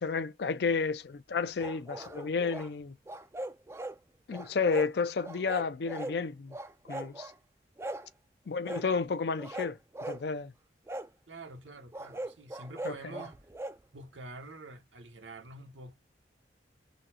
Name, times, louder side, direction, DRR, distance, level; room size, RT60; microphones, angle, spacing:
voice 1, 0.0-2.9 4.3-6.6 6.9-7.3 8.5-9.8 10.1-10.5 12.8-12.9, left 4 dB, 60° left, 0.4 m, -31 dB
sound 1, 1.6-2.7 3.1-4.0 4.3-4.9 5.2-6.2 6.5-7.3 7.8-8.1 8.6-8.9 9.4-10.2 10.9-11.1 11.9-13.8, right 1 dB, 15° right, 0.3 m, -39 dB
voice 2, 11.3-13.5 13.9-15.9, right 2 dB, 80° right, 0.9 m, -47 dB
3.8 x 2.0 x 2.8 m
head